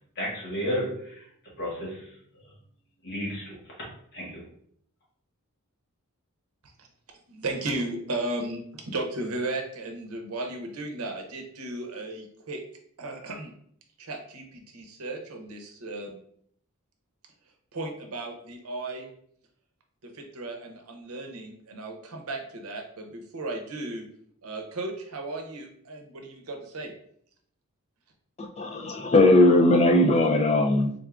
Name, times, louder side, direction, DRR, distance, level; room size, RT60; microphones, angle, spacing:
voice 1, 0.2-1.3 1.6-2.1 3.0-3.6 4.1-4.4, equal, 50° left, -4 dB, 1.4 m, -32 dB
voice 2, 7.3-12.6 13.0-13.5 14.0-16.2 17.7-19.1 20.0-24.1 24.4-26.9, right 2 dB, 75° right, 4 dB, 0.7 m, -35 dB
voice 3, 28.4-30.9, left 1 dB, 30° left, 3 dB, 0.4 m, -19 dB
3.7 x 3.5 x 2.4 m, 0.64 s
head